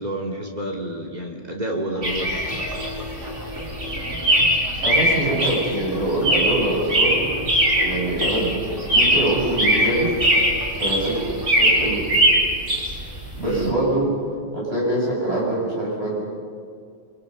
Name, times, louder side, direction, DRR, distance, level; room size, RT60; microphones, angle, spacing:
voice 1, 0.0-2.6 13.4-13.7, right 1 dB, 35° right, 0 dB, 3.1 m, -29 dB
sound 1, 1.9-12.0, left 1 dB, 15° right, 3.7 m, -35 dB
sound 2, 2.0-13.7, right 1 dB, 90° right, 4.0 m, -21 dB
voice 2, 4.8-7.3 7.8-8.6 8.9-10.1 10.8-11.2 11.5-12.2 13.4-14.1 14.5-16.2, right 1 dB, 60° right, -5 dB, 8.4 m, -24 dB
28.0 x 25.0 x 5.7 m, 2.2 s
omnidirectional pair, 1.2 m